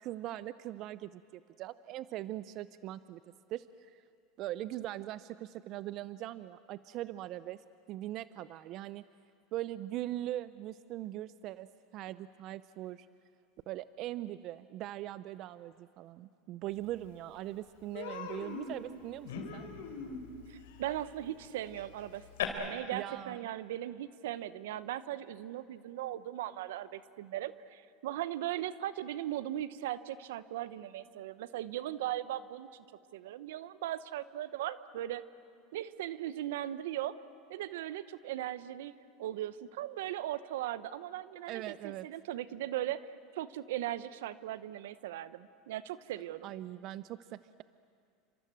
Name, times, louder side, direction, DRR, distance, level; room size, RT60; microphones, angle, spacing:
voice 1, 0.0-3.2 3.5-4.0 4.4-7.6 7.9-9.0 9.5-13.1 13.7-19.7 22.9-23.5 41.5-42.1 46.4-47.6, right 14 dB, 55° right, 15 dB, 0.6 m, -41 dB
Human voice, 16.9-17.0 17.3-17.5 17.9-22.4, left 7 dB, 85° left, 3.6 m, -41 dB
voice 2, 20.5-32.8 33.1-35.2 35.7-37.2 37.5-43.1 43.3-46.5, right 13 dB, 80° right, 15 dB, 0.9 m, -38 dB
30.0 x 26.0 x 7.6 m, 2.3 s
supercardioid pair, 105°, 0 cm